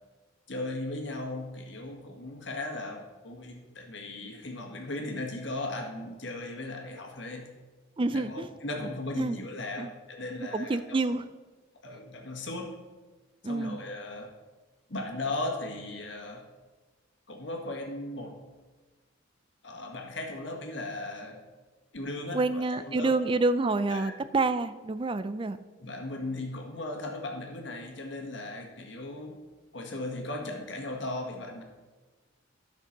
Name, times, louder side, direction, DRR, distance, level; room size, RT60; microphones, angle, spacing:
voice 1, 0.5-7.5 8.1-11.2 11.8-12.8 13.4-14.3 14.9-16.5 17.3-18.4 19.6-21.4 21.9-23.2 23.9-24.1 25.8-29.4 29.7-31.6, left 2 dB, 65° left, 2 dB, 1.8 m, -37 dB
voice 2, 8.0-8.5 9.2-9.4 9.8-9.9 10.5-11.2 13.4-13.8 22.3-25.6, right 3 dB, 25° right, 13 dB, 0.4 m, -28 dB
11.5 x 6.1 x 5.9 m, 1.3 s
head